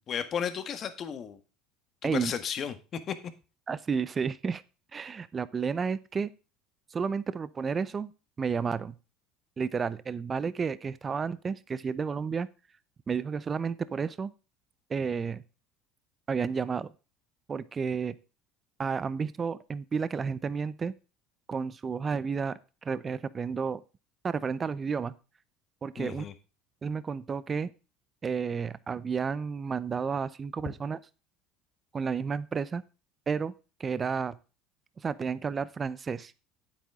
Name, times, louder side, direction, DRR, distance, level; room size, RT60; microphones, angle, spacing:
voice 1, 0.1-1.4 2.0-3.2 26.0-26.3, left 8 dB, 40° left, 10 dB, 1.6 m, -34 dB
voice 2, 3.7-4.6 4.9-6.3 6.9-8.1 8.4-8.9 9.6-12.5 13.1-14.3 14.9-15.4 16.3-16.9 17.5-18.2 18.8-20.9 21.5-23.8 24.2-25.1 25.8-26.2 26.8-27.7 28.2-31.0 31.9-32.8 33.3-33.5 33.8-34.4 35.0-36.3, right 5 dB, 30° right, 17 dB, 0.7 m, -31 dB
9.2 x 8.5 x 3.6 m, 0.32 s
supercardioid pair, 100°, 0 cm